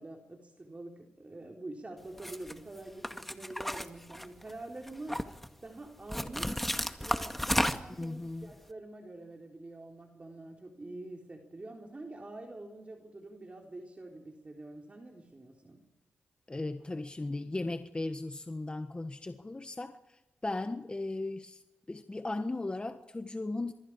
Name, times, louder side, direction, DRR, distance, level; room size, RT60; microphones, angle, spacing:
voice 1, 0.0-5.3 5.6-6.5 7.0-15.8, right 2 dB, 35° right, 1 dB, 3.9 m, -46 dB
sound 1, 2.2-2.5 3.0-4.5 4.9-5.5 6.1-8.0, equal, 5° left, 1.9 m, -32 dB
voice 2, 8.0-8.5 16.5-21.6 21.9-23.7, left 2 dB, 25° left, 7 dB, 1.5 m, -37 dB
26.5 x 23.0 x 4.9 m, 0.99 s
cardioid pair, 50°, 4 cm